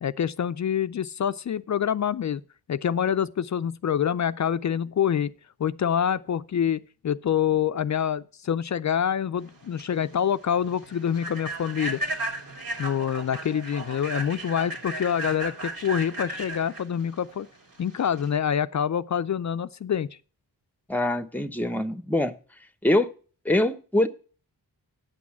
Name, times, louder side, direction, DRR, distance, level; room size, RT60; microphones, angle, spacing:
voice 1, 0.0-2.4 2.7-5.3 5.6-12.0 12.8-17.5 17.8-20.1, left 8 dB, 50° left, 0.4 m, -26 dB
Human voice / Train, 9.5-18.4, right 2 dB, 60° right, 2.7 m, -35 dB
voice 2, 20.9-22.3 22.8-23.1 23.4-24.1, left 1 dB, 5° left, 0.8 m, -23 dB
9.4 x 6.2 x 7.2 m
cardioid pair, 60°, 39 cm